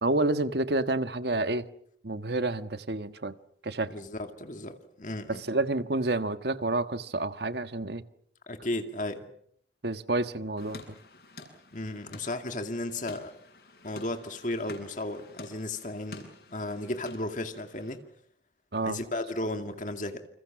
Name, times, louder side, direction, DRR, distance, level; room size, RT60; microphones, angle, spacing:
voice 1, 0.0-1.7 2.0-3.3 3.6-3.9 5.3-8.0 9.8-10.8 18.7-19.0, right 2 dB, 65° right, 1.4 m, -29 dB
voice 2, 3.9-5.4 8.5-9.3 11.7-13.3 13.8-18.0 18.8-20.2, left 1 dB, 45° left, 2.3 m, -34 dB
sound 1, 10.6-18.0, left 2 dB, 60° left, 8.0 m, -50 dB
29.0 x 28.0 x 6.1 m
head